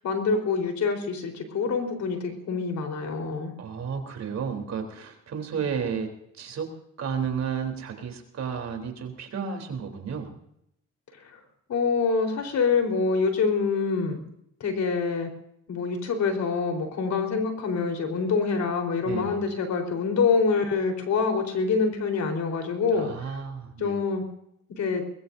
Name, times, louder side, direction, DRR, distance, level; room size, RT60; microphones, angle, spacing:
voice 1, 0.0-3.5 11.7-14.2 14.6-15.3 15.7-23.1 23.8-24.2 24.8-25.0, left 5 dB, 65° left, 4 dB, 4.4 m, -26 dB
voice 2, 3.6-6.1 6.4-6.7 7.0-10.3 19.0-19.4 22.9-24.0, right 6 dB, 60° right, 3 dB, 3.8 m, -32 dB
22.0 x 21.5 x 2.7 m, 0.76 s
cardioid pair, 90°, 30 cm